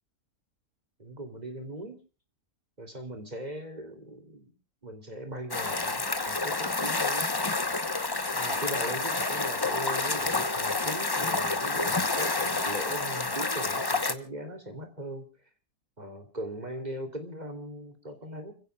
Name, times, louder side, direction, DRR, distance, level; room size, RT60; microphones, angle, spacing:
voice 1, 1.0-2.0 2.8-4.5 4.8-7.3 8.3-15.3 16.0-18.5, right 1 dB, 30° right, 5 dB, 3.0 m, -39 dB
sound 1, 5.5-14.1, left 3 dB, 20° left, 0.8 m, -29 dB
29.5 x 16.0 x 2.3 m, 0.35 s
omnidirectional pair, 1.6 m